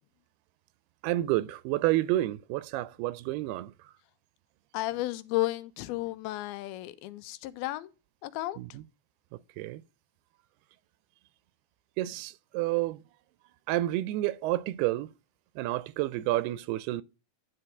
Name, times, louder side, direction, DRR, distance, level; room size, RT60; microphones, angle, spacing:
voice 1, 1.0-3.7 8.6-8.8 9.6-9.8 12.0-13.0 13.7-15.1 15.6-17.0, right 16 dB, 90° right, 2.6 m, -29 dB
voice 2, 4.7-7.9 8.2-8.6, left 17 dB, 80° left, 2.5 m, -33 dB
10.0 x 4.7 x 4.9 m
omnidirectional pair, 4.5 m